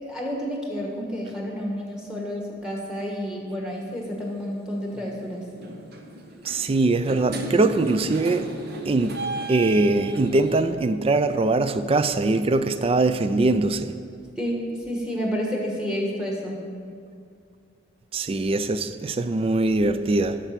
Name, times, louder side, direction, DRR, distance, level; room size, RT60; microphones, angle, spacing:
voice 1, 0.0-5.4 14.4-16.6, equal, 5° right, 1.4 m, -30 dB
sound 1, 3.7-4.0 4.9-5.2 5.5-10.6, right 2 dB, 55° right, 0.9 m, -35 dB
voice 2, 6.4-8.5 8.9-14.0 18.1-20.4, right 2 dB, 30° right, 0.4 m, -22 dB
9.2 x 6.7 x 5.8 m
head